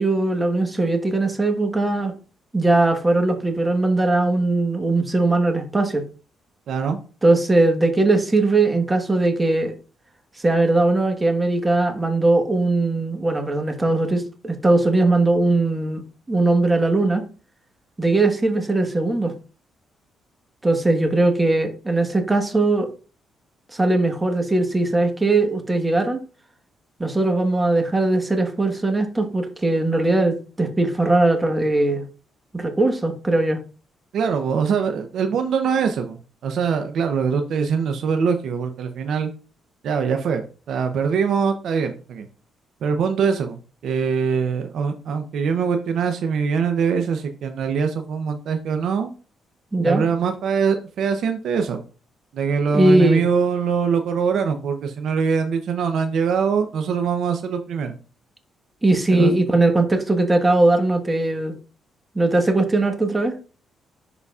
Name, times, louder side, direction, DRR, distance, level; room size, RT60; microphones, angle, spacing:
voice 1, 0.0-2.1 2.5-6.0 7.2-9.8 10.4-16.0 16.3-17.2 18.0-19.3 20.6-22.9 23.7-26.2 27.0-32.1 32.5-33.6 49.7-50.0 52.7-53.2 58.8-61.5 62.1-63.3, right 2 dB, 20° right, 5 dB, 1.3 m, -19 dB
voice 2, 6.7-7.0 34.1-39.3 39.8-42.3 42.8-49.1 49.8-51.8 52.3-58.0 59.1-59.4, right 6 dB, 70° right, 6 dB, 0.7 m, -23 dB
11.0 x 3.9 x 2.4 m, 0.36 s
cardioid pair, 90°, 0 cm